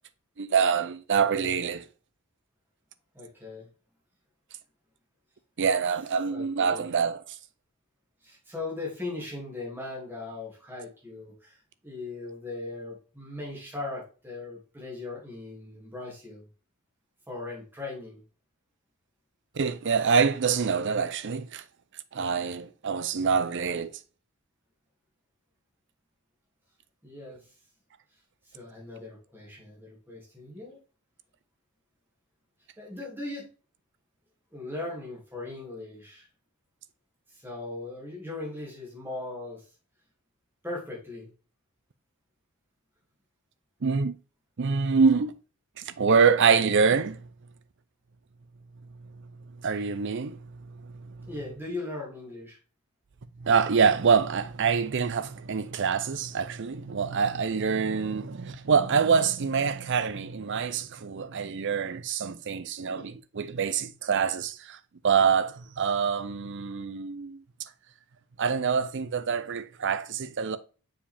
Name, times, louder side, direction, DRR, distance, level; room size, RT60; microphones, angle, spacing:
voice 1, 0.4-1.8 5.6-7.2 19.5-21.6 22.1-23.9 43.8-44.2 44.6-45.3 45.8-47.3 49.6-50.4 50.7-51.3 53.4-64.8 65.0-67.4 68.4-70.6, right 6 dB, 55° right, 0.5 m, -25 dB
voice 2, 3.1-3.7 6.3-6.9 8.2-16.4 17.3-18.2 27.0-27.5 28.4-30.8 32.8-33.5 34.5-36.3 37.3-39.7 40.6-41.3 51.3-52.6 62.9-63.0, left 2 dB, 10° right, 2.5 m, -39 dB
6.8 x 5.0 x 3.5 m
head